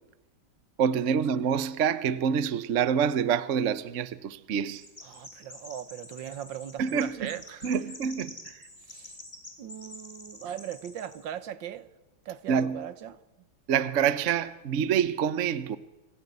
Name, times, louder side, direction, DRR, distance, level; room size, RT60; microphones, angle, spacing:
voice 1, 0.8-4.8 6.8-7.3 7.6-8.6 12.5-12.9 13.7-15.8, right 7 dB, 50° right, 0.9 m, -27 dB
Chirp tweet, 4.7-11.2, left 2 dB, 20° left, 3.4 m, -47 dB
voice 2, 5.0-7.7 8.9-9.1 9.6-11.9 12.3-13.2, right 10 dB, 70° right, 1.7 m, -39 dB
25.5 x 15.0 x 9.4 m
omnidirectional pair, 2.2 m